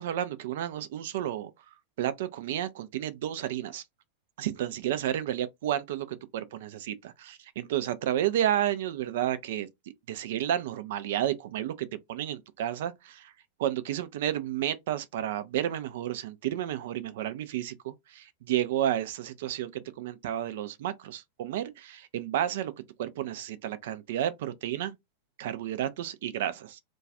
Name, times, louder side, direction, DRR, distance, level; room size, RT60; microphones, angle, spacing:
voice 1, 0.0-1.5 2.0-3.8 4.4-9.7 10.1-13.3 13.6-22.7 23.0-25.0 25.4-26.8, right 11 dB, 55° right, 0.3 m, -31 dB
2.3 x 2.2 x 2.6 m
figure-of-eight pair, 90°, 0 cm